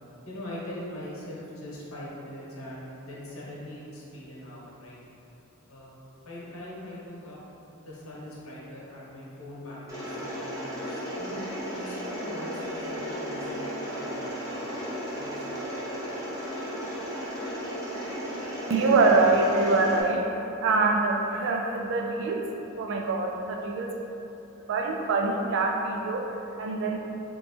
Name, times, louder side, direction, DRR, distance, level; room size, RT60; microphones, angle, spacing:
voice 1, 0.2-5.0 5.7-5.9 6.2-7.4 7.8-10.5 10.8-11.4 11.7-14.3 15.1-15.6, left 1 dB, 80° left, -6 dB, 1.0 m, -41 dB
Mechanisms, 9.9-20.0, equal, 15° right, 1.0 m, -34 dB
voice 2, 18.7-22.5 22.8-24.0 24.7-27.0, right 3 dB, 60° right, 1 dB, 0.3 m, -25 dB
3.1 x 3.0 x 4.3 m, 3.0 s
head